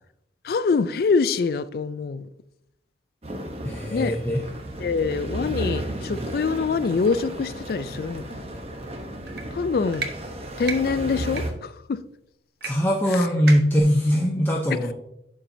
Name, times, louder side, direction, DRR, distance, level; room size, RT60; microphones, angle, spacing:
voice 1, 0.4-2.3 3.9-4.2 4.8-8.4 9.5-10.1 10.6-12.0 13.1-13.2 14.7-14.8, left 4 dB, 55° left, 0.3 m, -25 dB
sound 1, 3.2-11.5, right 1 dB, 35° right, 0.8 m, -34 dB
voice 2, 3.6-4.4 12.6-14.9, equal, 10° left, 0.6 m, -21 dB
sound 2, 9.3-9.4 9.9-10.1 10.6-10.8 11.3-11.4 12.6-12.7 13.0-13.1 13.5-13.8, right 5 dB, 60° right, 0.9 m, -31 dB
11.0 x 4.3 x 2.7 m
head